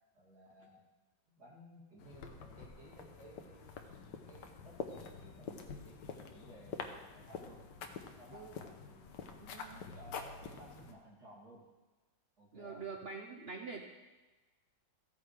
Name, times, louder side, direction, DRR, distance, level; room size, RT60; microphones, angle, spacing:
voice 1, 0.1-0.8 1.3-3.8 4.3-9.2 9.5-11.7 12.4-12.8, right 1 dB, 50° right, -5 dB, 3.2 m, -57 dB
sound 1, 2.0-10.9, left 5 dB, 70° left, 1.4 m, -47 dB
voice 2, 9.4-9.8 12.5-13.8, right 4 dB, 75° right, 3 dB, 0.5 m, -45 dB
14.5 x 9.4 x 3.3 m, 1.2 s
omnidirectional pair, 2.1 m